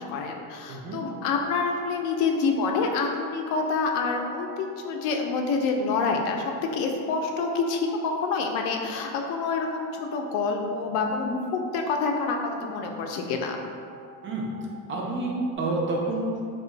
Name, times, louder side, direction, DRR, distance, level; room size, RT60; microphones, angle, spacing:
voice 1, 0.0-6.4 6.7-13.6, left 4 dB, 60° left, 2 dB, 0.5 m, -27 dB
voice 2, 0.7-1.0 14.2-14.5 14.9-16.4, right 2 dB, 30° right, -1 dB, 0.4 m, -28 dB
sound 1, 1.1-15.6, right 6 dB, 65° right, 0.7 m, -47 dB
2.5 x 2.4 x 3.8 m, 2.3 s
supercardioid pair, 110°, 44 cm